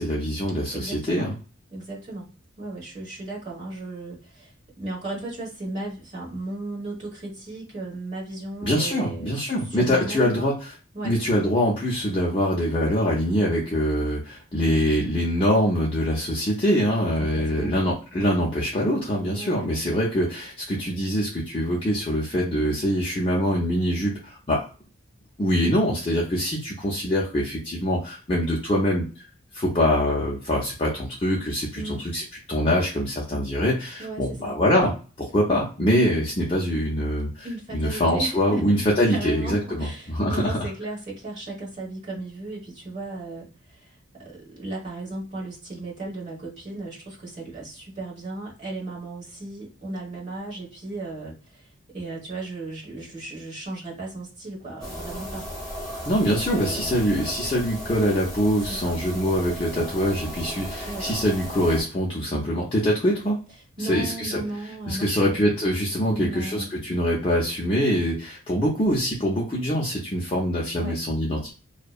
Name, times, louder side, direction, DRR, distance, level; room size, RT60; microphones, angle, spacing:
voice 1, 0.0-1.3 8.6-10.7 11.0-24.7 25.4-29.2 29.5-37.5 37.7-40.7 56.0-63.4 63.8-64.4 64.9-71.5, equal, 25° left, -5 dB, 0.5 m, -24 dB
voice 2, 0.7-1.3 1.7-2.3 2.6-10.5 10.9-11.1 17.2-17.8 19.2-19.7 31.7-32.1 34.0-34.6 37.4-38.7 39.0-55.5 56.2-57.0 58.7-58.9 60.8-61.1 63.8-65.5 66.1-66.7 70.8-71.0, right 2 dB, 35° right, -4 dB, 1.2 m, -35 dB
sound 1, 54.8-61.8, equal, 5° left, 1.1 m, -36 dB
2.6 x 2.1 x 2.3 m, 0.35 s
head